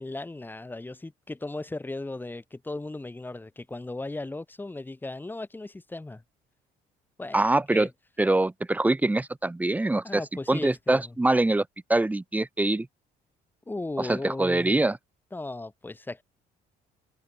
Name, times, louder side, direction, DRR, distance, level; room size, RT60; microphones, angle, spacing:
voice 1, 0.0-6.2 7.2-7.4 7.7-7.9 10.0-11.1 13.7-14.8 15.3-16.2, left 2 dB, 10° left, 1.9 m, -36 dB
voice 2, 7.3-7.9 8.2-10.2 10.5-12.9 14.0-15.0, right 2 dB, 10° right, 0.7 m, -24 dB
cardioid pair, 110°, 17 cm